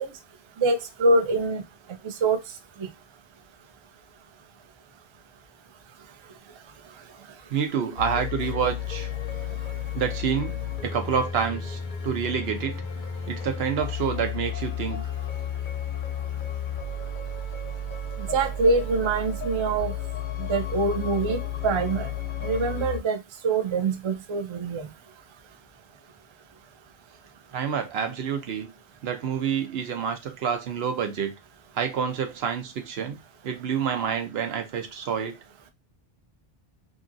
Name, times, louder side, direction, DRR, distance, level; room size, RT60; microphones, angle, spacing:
voice 1, 0.6-1.6 2.2-2.4 18.3-19.9 20.5-22.1 22.4-23.2 23.4-24.8, right 3 dB, 50° right, 0.3 m, -24 dB
voice 2, 7.5-9.1 9.9-10.6 10.8-12.9 13.3-15.0 27.5-28.7 29.0-31.3 31.7-33.2 33.4-35.4, right 7 dB, 80° right, 0.9 m, -28 dB
sound 1, 8.0-23.0, left 6 dB, 60° left, 0.6 m, -32 dB
2.8 x 2.5 x 2.5 m
omnidirectional pair, 1.0 m